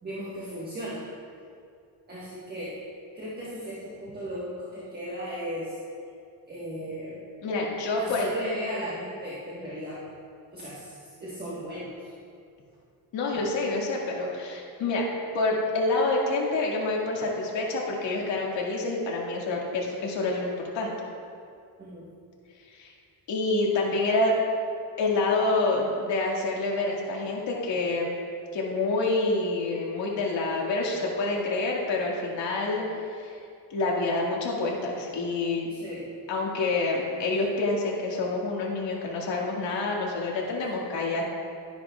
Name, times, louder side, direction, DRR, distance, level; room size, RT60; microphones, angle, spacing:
voice 1, 0.0-1.0 2.1-2.8 3.1-5.8 6.5-7.2 7.9-10.0 10.5-12.1 13.3-13.4 21.8-22.1 35.7-36.2, equal, 20° right, -8 dB, 1.4 m, -36 dB
voice 2, 7.4-8.3 13.1-15.1 15.3-20.9 22.7-22.9 23.3-24.3 25.0-28.1 28.5-32.8 33.1-33.3 33.7-35.7 36.3-41.2, left 2 dB, 85° left, -2 dB, 2.0 m, -27 dB
12.5 x 10.0 x 2.4 m, 2.4 s
cardioid pair, 175°, 43 cm